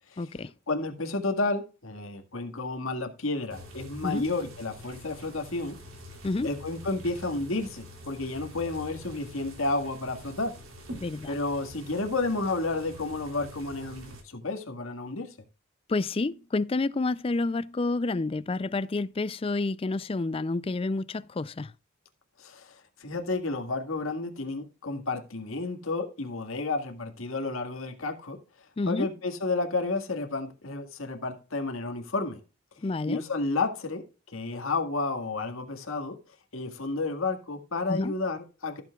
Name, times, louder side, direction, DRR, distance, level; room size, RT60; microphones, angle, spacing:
voice 1, 0.2-0.5 4.0-4.2 6.2-6.5 11.0-11.3 15.9-21.7 28.8-29.1 32.8-33.2 37.9-38.1, left 3 dB, 25° left, 0.4 m, -29 dB
voice 2, 0.7-5.8 6.4-10.5 11.3-15.3 22.4-22.7 23.0-28.4 28.9-32.4 33.1-34.0 34.3-36.2 36.5-38.8, left 3 dB, 80° left, 1.8 m, -31 dB
sound 1, 3.5-14.2, left 1 dB, 80° right, 3.2 m, -45 dB
15.0 x 7.4 x 2.3 m
head